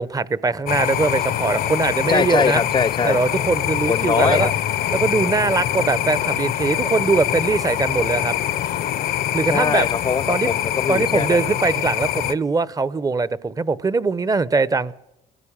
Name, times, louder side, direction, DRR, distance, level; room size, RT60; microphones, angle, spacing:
voice 1, 0.0-2.6 3.0-4.5 4.9-8.3 9.3-9.9 10.3-10.5 10.9-14.9, right 4 dB, 20° right, 0.8 m, -21 dB
sound 1, 0.7-12.3, left 11 dB, 60° left, 0.8 m, -24 dB
voice 2, 2.1-3.2 3.9-4.5 9.5-11.4, left 6 dB, 25° left, 0.7 m, -22 dB
21.0 x 16.0 x 8.7 m
cardioid pair, 110°, 17 cm